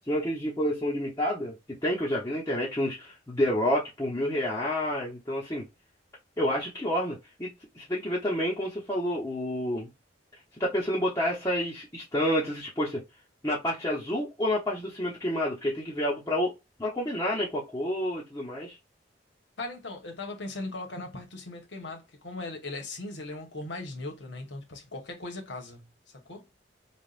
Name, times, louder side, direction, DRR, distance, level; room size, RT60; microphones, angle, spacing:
voice 1, 0.1-5.6 6.4-9.9 10.6-13.0 13.4-16.5 16.8-18.8, equal, 15° left, 1.0 m, -29 dB
voice 2, 19.6-25.9 26.1-26.5, left 2 dB, 80° left, 1.2 m, -38 dB
5.2 x 2.5 x 2.5 m
head